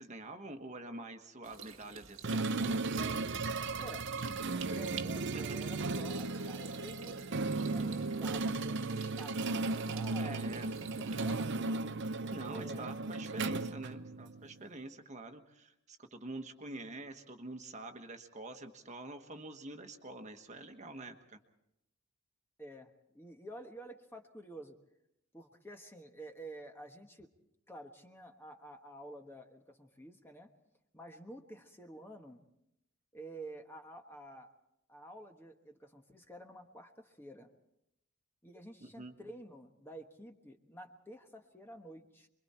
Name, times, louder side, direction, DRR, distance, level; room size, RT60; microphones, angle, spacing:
voice 1, 0.0-2.4 5.3-5.6 10.1-10.7 12.3-21.4 38.8-39.1, right 2 dB, 35° right, 6 dB, 1.3 m, -46 dB
sound 1, 1.4-11.5, right 7 dB, 70° right, 1.6 m, -51 dB
sound 2, 2.2-14.5, right 3 dB, 55° right, 0.7 m, -35 dB
voice 2, 3.8-11.9 12.4-12.9 22.6-24.8 25.3-27.3 27.7-30.5 30.9-32.4 33.1-34.5 34.9-37.5 38.4-42.3, right 1 dB, 10° left, 4 dB, 1.2 m, -50 dB
28.0 x 22.5 x 4.3 m, 0.81 s
head